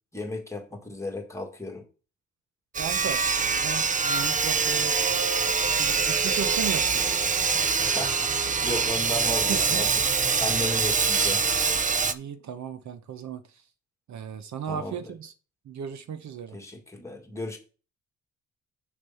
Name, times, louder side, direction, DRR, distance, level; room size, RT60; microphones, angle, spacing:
voice 1, 0.1-1.9 7.8-9.9 10.4-11.5 14.7-15.1 16.5-17.6, left 1 dB, 10° left, 1.9 m, -35 dB
Sawing, 2.7-12.1, right 5 dB, 25° right, 0.5 m, -24 dB
voice 2, 2.8-3.2 3.5-5.0 5.8-7.0 9.5-9.8 12.0-13.6 14.1-15.3 15.6-16.6, right 7 dB, 65° right, 0.9 m, -35 dB
6.7 x 5.2 x 5.6 m
cardioid pair, 135°, 31 cm